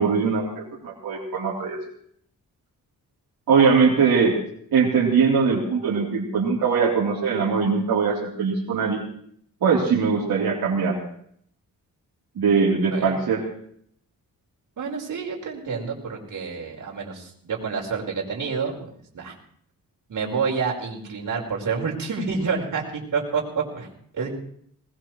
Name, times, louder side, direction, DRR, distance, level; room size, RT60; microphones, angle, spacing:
voice 1, 0.0-1.8 3.5-4.4 4.7-9.0 9.6-11.0 12.4-13.4, right 5 dB, 80° right, -5 dB, 3.5 m, -21 dB
voice 2, 14.8-18.9 19.1-19.4 20.1-23.9 24.1-24.3, right 5 dB, 60° right, -1 dB, 4.7 m, -28 dB
20.0 x 20.0 x 3.1 m, 0.65 s
wide cardioid pair, 115°, 35 cm